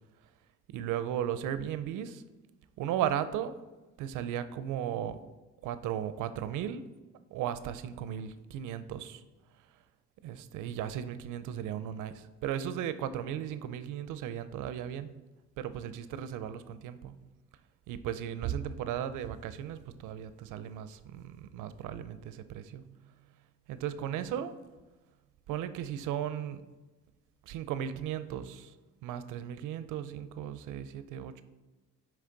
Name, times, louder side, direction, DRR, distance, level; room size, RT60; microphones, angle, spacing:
voice 1, 0.7-2.2 2.8-3.5 4.0-5.2 5.6-6.9 7.3-9.2 10.2-15.1 15.6-17.1 17.9-22.8 23.7-24.5 25.5-26.6 27.5-28.7 29.0-31.4, right 10 dB, 85° right, 12 dB, 0.5 m, -36 dB
7.9 x 3.2 x 3.8 m, 1.2 s
cardioid pair, 90°, 30 cm